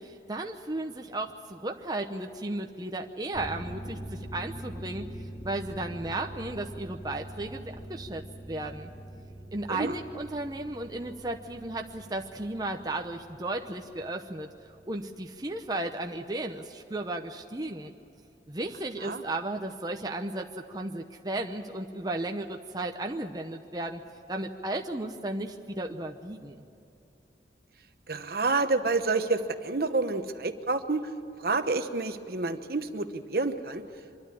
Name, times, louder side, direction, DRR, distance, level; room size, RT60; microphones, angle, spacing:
voice 1, 0.0-5.1 5.4-8.9 9.5-14.5 14.9-17.9 18.5-24.0 24.3-26.6, right 2 dB, 20° right, 3 dB, 0.8 m, -34 dB
sound 1, 3.3-15.4 15.8-15.9, right 1 dB, 25° left, 1.3 m, -44 dB
voice 2, 28.1-31.1 31.4-33.8, right 3 dB, 55° right, 8 dB, 1.0 m, -28 dB
24.5 x 12.5 x 9.8 m, 2.8 s
head